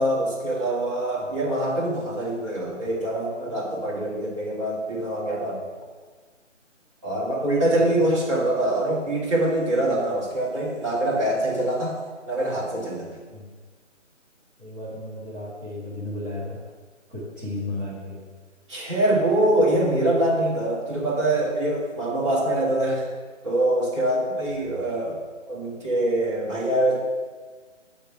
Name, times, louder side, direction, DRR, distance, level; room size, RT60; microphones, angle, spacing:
voice 1, 0.0-5.6 7.0-12.0 12.3-13.1 18.7-23.1 23.4-25.2 25.5-27.0, right 1 dB, 25° right, -6 dB, 2.1 m, -24 dB
voice 2, 7.7-8.4 13.3-13.5 14.6-16.6 17.1-18.3 24.5-24.9, left 1 dB, 5° right, -18 dB, 1.8 m, -35 dB
8.3 x 7.2 x 5.7 m, 1.4 s
figure-of-eight pair, 155°, 38 cm